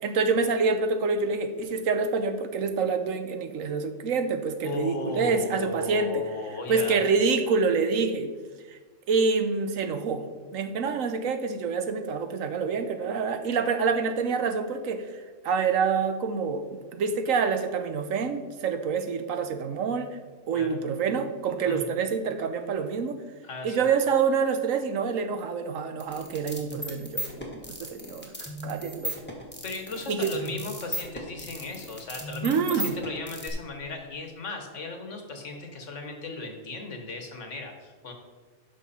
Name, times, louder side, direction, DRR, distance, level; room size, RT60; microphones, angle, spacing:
voice 1, 0.0-6.2 6.7-8.3 8.7-8.8 9.1-10.2 10.5-20.2 20.5-23.2 23.6-29.1 30.1-30.3 32.4-32.9, right 5 dB, 85° right, 9 dB, 1.2 m, -27 dB
voice 2, 4.6-7.0 20.5-20.8 21.7-22.0 23.4-23.8 29.6-38.1, left 2 dB, 65° left, 4 dB, 1.7 m, -36 dB
sound 1, 26.0-33.5, equal, 10° left, 1.4 m, -36 dB
11.0 x 6.1 x 4.3 m, 1.4 s
omnidirectional pair, 1.3 m